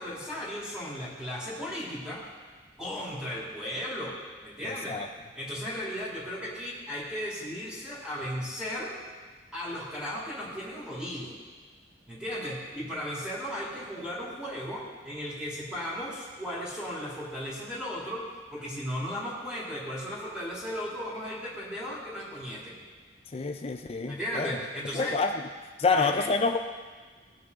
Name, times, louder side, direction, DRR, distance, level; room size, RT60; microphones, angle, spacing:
voice 1, 0.0-2.2 2.8-4.2 4.4-5.0 5.4-9.0 9.5-11.4 12.1-22.8 24.1-25.2 25.9-26.3, equal, 5° right, -7 dB, 2.4 m, -36 dB
voice 2, 4.6-5.1 23.3-24.5 24.9-25.4 25.8-26.6, left 4 dB, 35° left, 6 dB, 0.5 m, -27 dB
17.5 x 6.3 x 4.0 m, 1.4 s
head